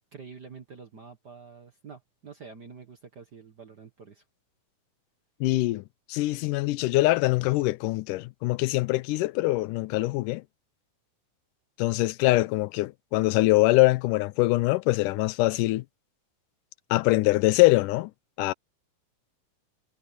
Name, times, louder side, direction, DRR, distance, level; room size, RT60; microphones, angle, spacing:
voice 1, 0.1-4.2, right 5 dB, 50° right, 1.3 m, -47 dB
voice 2, 5.4-5.8 6.1-10.4 11.8-15.8 16.9-18.1 18.4-18.5, left 20 dB, 90° left, 2.2 m, -23 dB
omnidirectional pair, 3.7 m